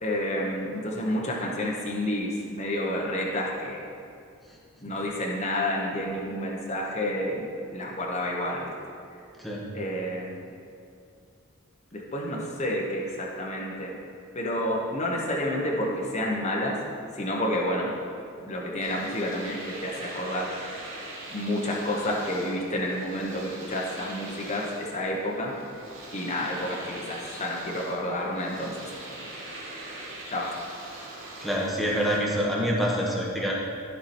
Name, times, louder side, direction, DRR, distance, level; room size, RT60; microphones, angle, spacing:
voice 1, 0.0-3.8 4.8-7.4 7.7-8.7 9.7-10.5 11.9-13.9 14.3-16.8 17.1-17.9 18.4-20.5 21.3-25.5 26.1-29.3 30.3-30.5, left 1 dB, 35° left, -2 dB, 1.1 m, -30 dB
Domestic sounds home sounds, 18.8-32.2, right 2 dB, 70° right, 2.4 m, -42 dB
voice 2, 31.4-33.7, equal, ahead, -4 dB, 1.5 m, -26 dB
14.0 x 6.0 x 4.4 m, 2.4 s
head